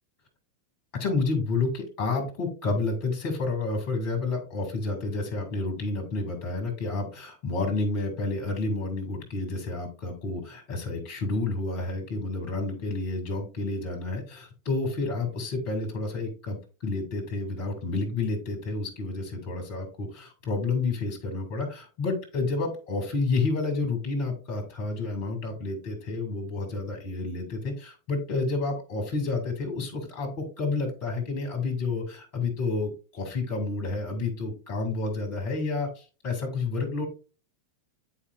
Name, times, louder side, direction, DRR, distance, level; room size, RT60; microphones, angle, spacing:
voice 1, 1.0-16.6 16.8-37.1, left 3 dB, 40° left, 3 dB, 2.4 m, -30 dB
10.0 x 4.7 x 2.5 m, 0.34 s
figure-of-eight pair, 90°, 0 cm